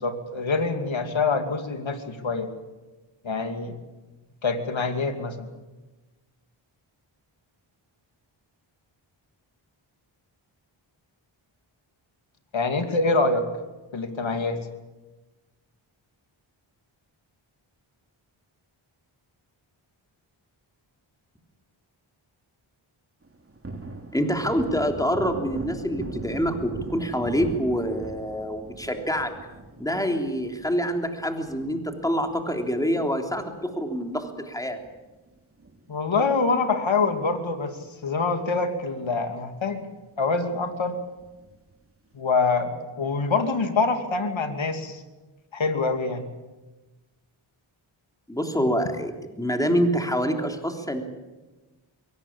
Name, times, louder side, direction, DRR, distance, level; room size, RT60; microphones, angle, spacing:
voice 1, 0.0-2.5 3.2-3.8 4.4-5.5 12.5-13.5 13.9-14.7 35.9-39.9 40.2-41.0 42.1-45.0 45.5-46.2, left 4 dB, 65° left, 7 dB, 2.8 m, -25 dB
Thunder, 23.2-34.0 34.3-34.4 34.8-36.3 36.6-36.7 37.1-37.9 38.3-38.4 38.7-38.8 41.2-41.7, right 2 dB, 25° right, 2.9 m, -40 dB
voice 2, 24.1-29.3 29.8-34.8 48.3-51.0, equal, 5° left, 4 dB, 3.4 m, -26 dB
22.5 x 18.5 x 8.7 m, 1.2 s
cardioid pair, 50°, 49 cm